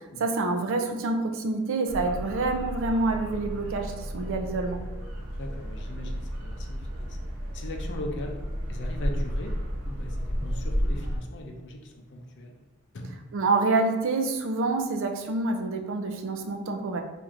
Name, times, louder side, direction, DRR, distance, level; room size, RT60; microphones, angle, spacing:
voice 1, 0.2-4.8 13.3-17.0, right 3 dB, 65° right, 5 dB, 0.4 m, -27 dB
sound 1, 1.9-11.2, equal, 90° right, 0.9 m, -32 dB
voice 2, 5.2-7.2 7.5-8.4 8.7-9.5 9.9-12.6 12.9-13.3, left 1 dB, 55° left, 2 dB, 0.5 m, -39 dB
4.4 x 2.5 x 2.5 m, 1.1 s
head